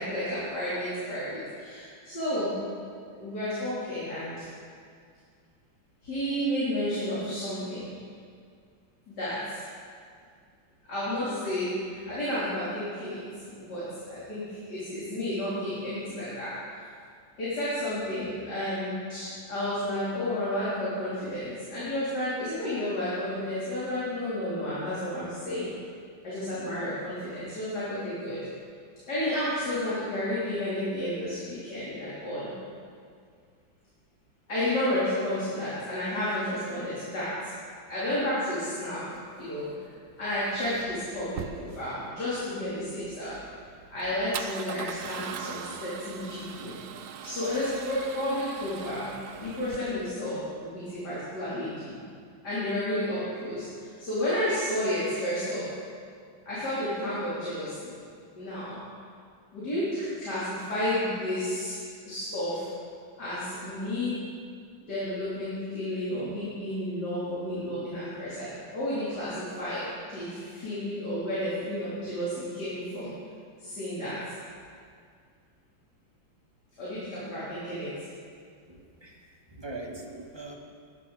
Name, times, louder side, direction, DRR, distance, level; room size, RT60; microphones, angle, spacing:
voice 1, 0.0-2.6 3.1-4.4 6.0-7.9 9.1-9.6 10.9-16.5 17.4-25.7 26.2-28.4 29.1-32.5 34.5-37.3 37.9-39.0 39.4-39.7 40.2-43.4 43.9-46.8 47.2-49.2 49.4-52.0 52.4-55.7 56.5-57.9 58.3-58.8 59.5-62.6 63.2-64.2 64.9-68.5 68.7-69.8 70.1-73.1 73.6-74.2 76.8-77.9, left 1 dB, 50° left, -11 dB, 3.9 m, -31 dB
Male speech man speaking / Car / Engine starting, 39.0-50.1, right 8 dB, 70° right, 0.9 m, -42 dB
voice 2, 78.7-80.5, right 2 dB, 15° right, -1 dB, 1.2 m, -42 dB
19.0 x 10.5 x 4.1 m, 2.2 s
omnidirectional pair, 2.3 m